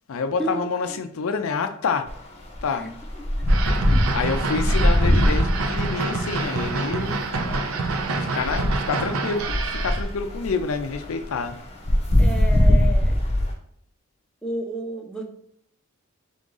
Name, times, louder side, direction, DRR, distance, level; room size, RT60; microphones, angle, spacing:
voice 1, 0.1-2.1 2.6-2.9 4.1-7.2 8.2-11.6, left 5 dB, 70° left, 0.5 m, -27 dB
sound 1, 2.1-2.2 2.5-13.5, left 1 dB, 30° left, 0.9 m, -22 dB
sound 2, 3.5-10.0, right 3 dB, 70° right, 0.6 m, -27 dB
voice 2, 12.2-13.2 14.4-15.2, equal, 5° left, 0.7 m, -31 dB
3.7 x 3.7 x 3.8 m
head